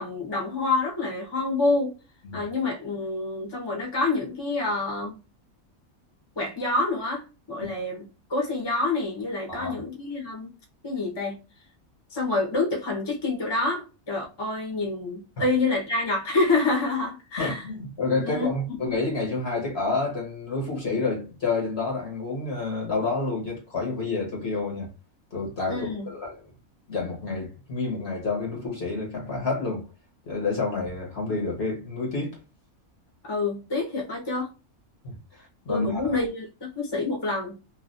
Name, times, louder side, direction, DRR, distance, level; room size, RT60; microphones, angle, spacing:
voice 1, 0.0-1.9 2.3-5.1 6.3-10.5 10.8-11.4 12.1-17.6 18.2-18.8 25.7-26.1 33.2-34.5 35.7-36.5 36.7-37.6, left 3 dB, 20° left, 0.9 m, -27 dB
voice 2, 9.5-9.8 17.4-24.9 25.3-26.4 26.9-29.8 30.3-32.4 35.0-36.2, left 3 dB, 50° left, 1.2 m, -29 dB
3.1 x 2.5 x 2.5 m
omnidirectional pair, 1.5 m